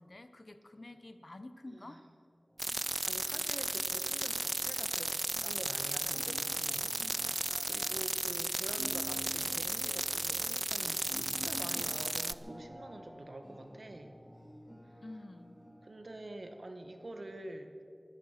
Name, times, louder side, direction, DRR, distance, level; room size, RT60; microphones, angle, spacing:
voice 1, 0.0-2.0 15.0-15.6, left 2 dB, 55° left, 10 dB, 0.9 m, -49 dB
voice 2, 1.7-2.0 3.1-14.2 15.8-17.8, right 1 dB, 75° right, 6 dB, 1.4 m, -47 dB
sound 1, 2.5-17.2, equal, 15° right, 5.0 m, -52 dB
sound 2, 2.6-12.3, right 1 dB, 40° right, 0.4 m, -34 dB
24.0 x 9.8 x 5.9 m, 2.4 s
wide cardioid pair, 60°, 0 cm